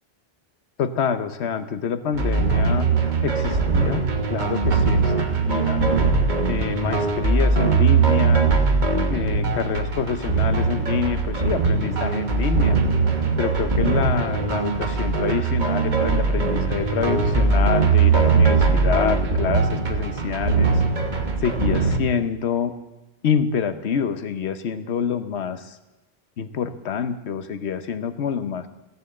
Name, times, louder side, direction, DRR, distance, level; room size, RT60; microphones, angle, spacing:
voice 1, 0.8-2.9 3.2-4.0 4.3-5.9 6.5-8.5 9.1-12.8 13.4-20.8 21.4-22.7 23.2-25.8 26.4-28.7, left 7 dB, 80° left, 11 dB, 1.1 m, -27 dB
sound 1, 2.1-22.0, right 4 dB, 45° right, 1.2 m, -21 dB
15.0 x 6.9 x 7.7 m, 1.1 s
omnidirectional pair, 1.1 m